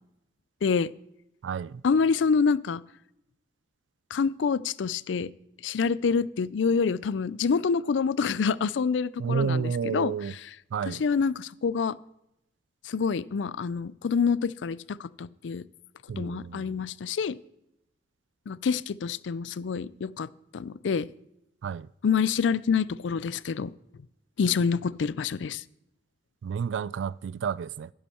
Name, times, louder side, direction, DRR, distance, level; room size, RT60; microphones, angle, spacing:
voice 1, 0.6-0.9 1.8-2.8 4.1-5.3 5.6-10.1 10.9-12.0 12.9-15.6 16.2-17.4 18.5-21.1 22.0-23.7 24.4-25.6, left 5 dB, 85° left, 0.4 m, -27 dB
voice 2, 1.4-1.8 9.2-10.3 10.7-11.0 16.1-16.9 21.6-21.9 26.4-27.9, right 6 dB, 85° right, 0.3 m, -30 dB
11.0 x 10.5 x 4.4 m
head